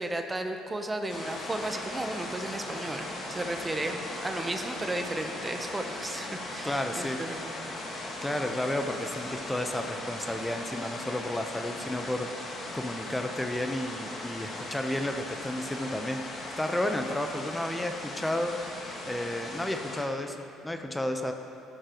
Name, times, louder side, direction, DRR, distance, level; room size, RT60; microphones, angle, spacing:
voice 1, 0.0-7.8, right 2 dB, 20° right, 5 dB, 0.9 m, -34 dB
sound 1, 1.1-20.0, left 2 dB, 50° left, 2.3 m, -38 dB
voice 2, 6.6-7.2 8.2-12.3 12.7-18.6 19.0-21.3, left 1 dB, 10° left, 5 dB, 0.9 m, -32 dB
13.5 x 12.5 x 3.1 m, 2.6 s
hypercardioid pair, 65°, 0 cm